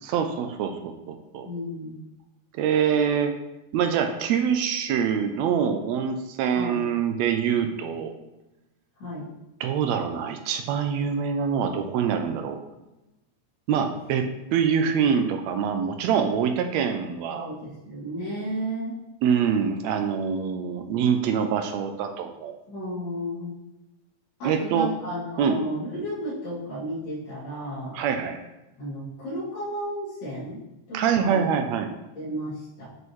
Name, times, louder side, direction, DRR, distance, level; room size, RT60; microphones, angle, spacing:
voice 1, 0.0-1.5 2.5-3.3 3.7-8.1 9.6-12.6 13.7-14.3 14.5-17.5 19.2-22.5 24.4-24.9 25.4-25.6 27.9-28.4 30.9-31.9, right 7 dB, 80° right, 6 dB, 1.7 m, -25 dB
voice 2, 1.4-2.0 6.5-6.8 9.0-9.3 17.3-19.0 22.7-23.6 24.4-27.9 28.8-30.6 30.9-31.5 32.1-32.9, equal, 55° left, -10 dB, 3.4 m, -33 dB
7.7 x 5.2 x 3.1 m, 0.98 s
omnidirectional pair, 3.5 m